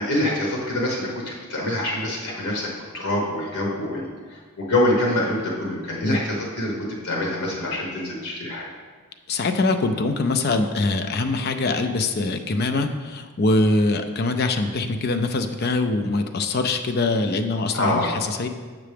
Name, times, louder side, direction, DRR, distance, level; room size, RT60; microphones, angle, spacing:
voice 1, 0.0-6.7 7.0-8.7 17.7-18.1, left 1 dB, 85° left, -2 dB, 1.2 m, -25 dB
voice 2, 9.3-18.5, left 2 dB, 45° left, 7 dB, 0.4 m, -23 dB
6.6 x 6.0 x 3.4 m, 1.5 s
head